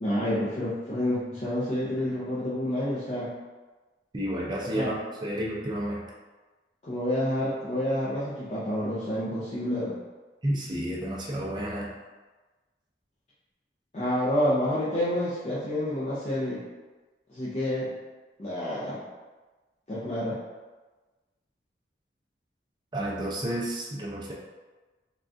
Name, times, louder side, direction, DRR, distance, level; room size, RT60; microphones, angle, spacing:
voice 1, 0.0-3.3 4.7-4.9 6.8-10.0 13.9-16.6 17.3-17.9 18.4-19.0 19.9-20.4, left 1 dB, 35° left, -10 dB, 0.5 m, -28 dB
voice 2, 4.1-4.9 5.2-6.1 10.4-11.9 22.9-24.3, right 1 dB, 25° right, -3 dB, 0.5 m, -31 dB
3.5 x 2.3 x 2.5 m, 1.2 s
head